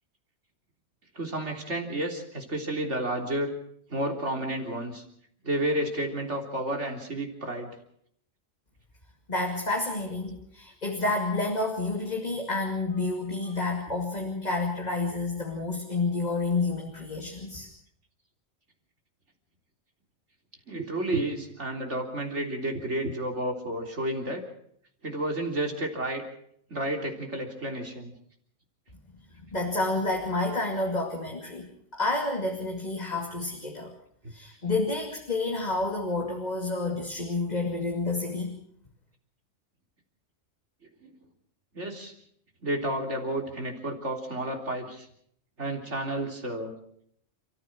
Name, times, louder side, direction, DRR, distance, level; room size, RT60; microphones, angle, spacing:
voice 1, 1.2-3.6 3.9-5.0 5.4-7.7 20.7-24.4 25.0-26.2 26.7-28.1 41.0-41.1 41.7-42.1 42.6-45.1 45.6-46.7, right 1 dB, 80° right, 3 dB, 3.9 m, -31 dB
voice 2, 9.3-17.7 29.4-33.9 34.3-38.6, left 3 dB, 35° left, 2 dB, 2.6 m, -29 dB
30.0 x 14.5 x 6.2 m, 0.67 s
omnidirectional pair, 1.2 m